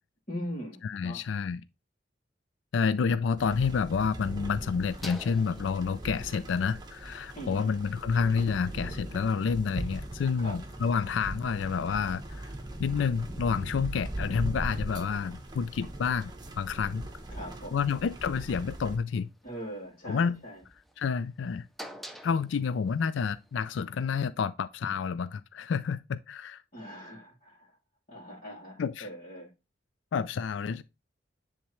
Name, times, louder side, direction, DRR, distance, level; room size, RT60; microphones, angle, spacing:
voice 1, 0.3-1.2 7.3-7.7 10.4-10.6 17.3-17.8 19.4-20.6 26.7-27.8 28.1-29.5, equal, 40° left, 2.6 m, -41 dB
voice 2, 0.8-1.6 2.7-12.5 12.8-16.3 16.6-17.1 17.7-19.3 20.1-20.4 21.0-21.7 22.2-26.6 28.8-29.1 30.1-30.8, left 6 dB, 80° left, 0.4 m, -29 dB
sound 1, 3.4-19.0, right 1 dB, 20° right, 1.0 m, -40 dB
sound 2, 19.3-24.1, equal, ahead, 0.6 m, -53 dB
10.0 x 3.6 x 3.2 m
head